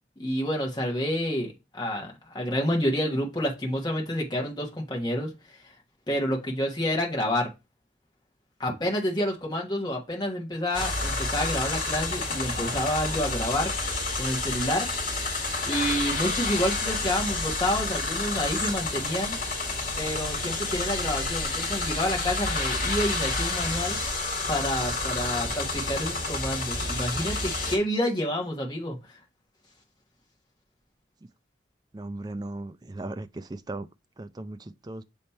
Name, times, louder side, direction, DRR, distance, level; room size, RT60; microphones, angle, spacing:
voice 1, 0.2-5.7 6.1-7.5 8.6-13.7 14.2-15.1 15.6-19.4 20.0-24.0 24.4-29.1, left 1 dB, 25° left, 1.3 m, -29 dB
sound 1, 10.7-27.8, left 2 dB, 50° left, 2.0 m, -29 dB
voice 2, 31.9-33.9 34.2-35.0, right 2 dB, 20° right, 0.4 m, -37 dB
7.0 x 3.2 x 4.3 m
head